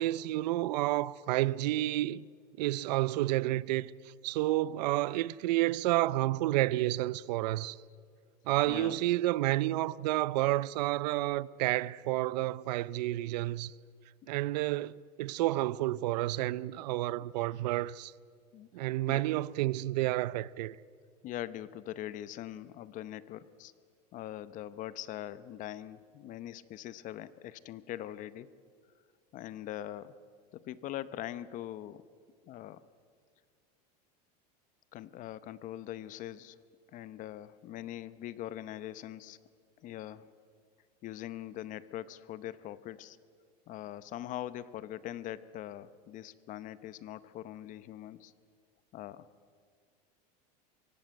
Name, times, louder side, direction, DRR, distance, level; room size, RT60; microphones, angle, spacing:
voice 1, 0.0-2.2 2.6-3.9 4.2-7.8 8.5-13.7 14.3-18.1 18.7-20.8, right 16 dB, 80° right, 0.6 m, -30 dB
voice 2, 8.7-9.0 18.5-18.7 19.1-19.2 21.2-23.7 24.1-28.5 29.3-30.2 30.5-32.1 32.4-32.8 34.9-36.6 36.9-39.4 39.8-40.3 41.0-43.2 43.7-48.3 48.9-49.3, left 12 dB, 40° left, 0.8 m, -42 dB
23.0 x 17.0 x 9.1 m
supercardioid pair, 145°, 21 cm